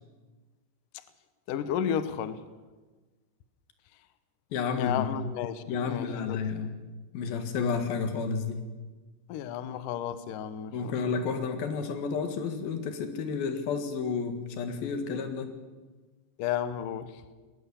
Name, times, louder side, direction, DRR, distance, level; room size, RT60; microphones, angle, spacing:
voice 1, 1.5-2.4 4.8-6.4 9.3-10.9 16.4-17.2, left 9 dB, 85° left, 12 dB, 1.8 m, -32 dB
voice 2, 4.5-5.1 5.7-6.8 7.1-8.7 10.7-15.5, left 5 dB, 60° left, 7 dB, 3.3 m, -31 dB
20.5 x 18.5 x 7.0 m, 1.3 s
omnidirectional pair, 5.2 m